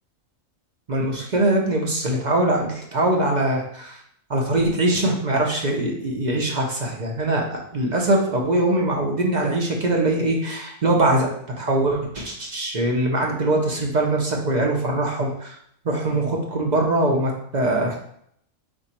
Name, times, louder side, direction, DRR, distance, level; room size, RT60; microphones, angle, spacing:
voice 1, 0.9-4.0 4.3-11.3 11.6-15.6 15.8-18.0, right 1 dB, 40° right, 0 dB, 0.7 m, -22 dB
4.8 x 2.6 x 4.2 m, 0.69 s
omnidirectional pair, 1.4 m